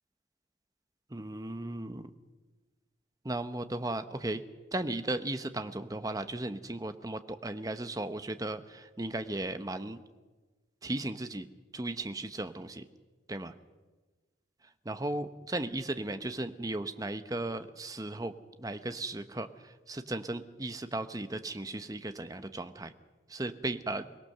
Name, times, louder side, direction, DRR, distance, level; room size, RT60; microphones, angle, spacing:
voice 1, 1.1-2.1 3.2-4.4 4.7-10.0 10.8-11.5 11.7-12.8 13.3-13.5 14.8-18.3 18.6-19.5 19.9-22.9 23.3-24.0, right 2 dB, 20° right, 10 dB, 0.9 m, -36 dB
23.5 x 19.0 x 6.7 m, 1.2 s
head